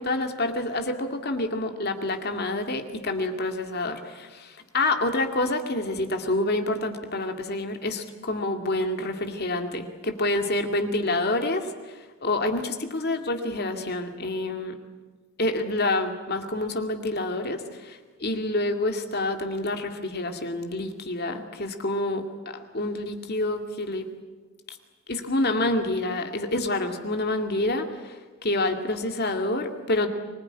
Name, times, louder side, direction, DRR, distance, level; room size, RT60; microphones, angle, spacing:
voice 1, 0.0-14.8 15.4-24.1 24.7-24.8 25.1-30.1, left 2 dB, 45° left, 5 dB, 2.3 m, -28 dB
25.0 x 20.0 x 9.9 m, 1.3 s
head